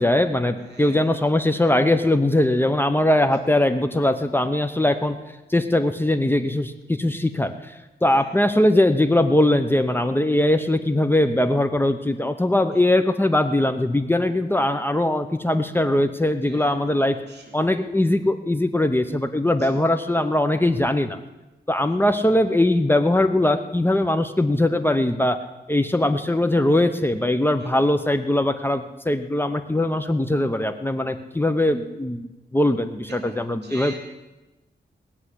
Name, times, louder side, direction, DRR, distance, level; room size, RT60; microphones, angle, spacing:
voice 1, 0.0-5.2 5.5-17.2 17.5-21.2 21.7-25.4 25.7-33.9, left 1 dB, 10° left, 9 dB, 0.8 m, -21 dB
voice 2, 0.6-1.0 8.1-8.4 12.7-12.8 16.4-16.7 17.0-17.6 19.6-19.8 21.8-21.9 27.6-27.9 33.1-33.9, right 3 dB, 65° right, 2 dB, 2.8 m, -43 dB
19.5 x 7.3 x 9.9 m, 1.1 s
wide cardioid pair, 100°, 18 cm